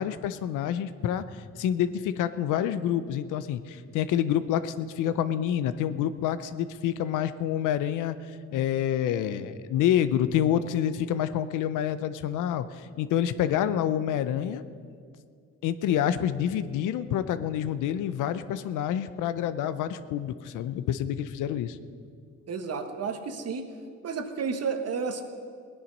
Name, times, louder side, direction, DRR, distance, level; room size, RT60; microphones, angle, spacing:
voice 1, 0.0-8.2 8.5-14.6 15.6-21.8, left 10 dB, 90° left, 12 dB, 0.7 m, -28 dB
voice 2, 22.5-23.7 24.0-25.2, right 5 dB, 55° right, 7 dB, 1.3 m, -31 dB
18.5 x 10.0 x 5.3 m, 2.2 s
cardioid pair, 90°, 30 cm